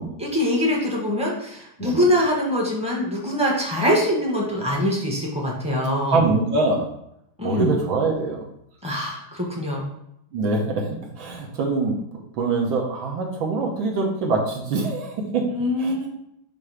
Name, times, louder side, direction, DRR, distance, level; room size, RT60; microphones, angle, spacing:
voice 1, 0.2-6.2 7.4-7.8 8.8-9.9 15.5-16.1, left 1 dB, 5° right, -3 dB, 0.9 m, -23 dB
voice 2, 6.1-6.9 7.4-8.4 10.3-10.9 11.2-12.0 12.4-15.4 15.8-15.9, right 3 dB, 70° right, 0 dB, 1.7 m, -23 dB
7.8 x 2.7 x 4.9 m, 0.78 s
omnidirectional pair, 2.3 m